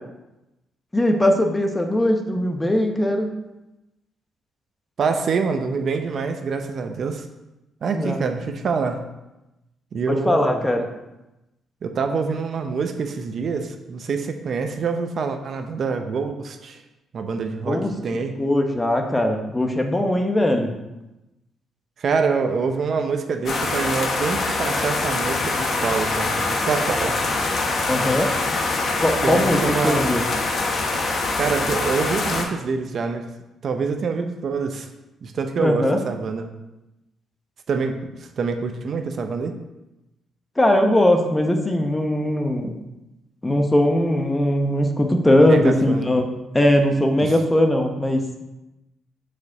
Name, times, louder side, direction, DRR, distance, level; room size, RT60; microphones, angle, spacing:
voice 1, 0.9-3.3 7.9-8.2 10.1-10.8 17.7-17.9 18.4-20.7 27.1-27.2 27.9-28.3 29.0-29.6 29.8-30.2 35.6-36.0 40.6-42.8 43.4-46.3 46.5-48.4, left 1 dB, 15° left, 4 dB, 0.9 m, -20 dB
voice 2, 5.0-7.3 7.8-9.0 9.9-10.7 11.8-16.8 17.1-18.3 22.0-27.2 29.2-30.2 31.4-33.3 33.6-34.9 35.2-36.5 37.7-39.5 45.4-46.1 47.2-47.3, right 5 dB, 55° right, 6 dB, 0.6 m, -26 dB
sound 1, 23.5-32.4, left 3 dB, 55° left, 1.0 m, -24 dB
5.0 x 4.0 x 5.9 m, 0.96 s
cardioid pair, 90°, 0 cm